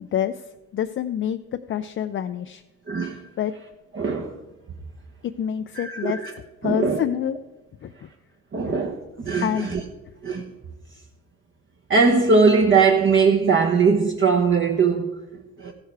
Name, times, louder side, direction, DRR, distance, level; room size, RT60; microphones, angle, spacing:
voice 1, 0.0-1.4 1.7-2.6 3.4-3.5 5.2-6.2 6.6-7.4 7.8-8.1 8.7-8.8 9.4-9.7, left 10 dB, 45° left, 0.4 m, -27 dB
voice 2, 2.9-3.3 3.9-4.3 5.7-6.2 6.6-7.0 8.5-9.8 10.2-10.4 11.9-15.2 15.6-15.7, right 5 dB, 40° right, 1.0 m, -20 dB
15.0 x 6.5 x 4.6 m
cardioid pair, 90°, 30 cm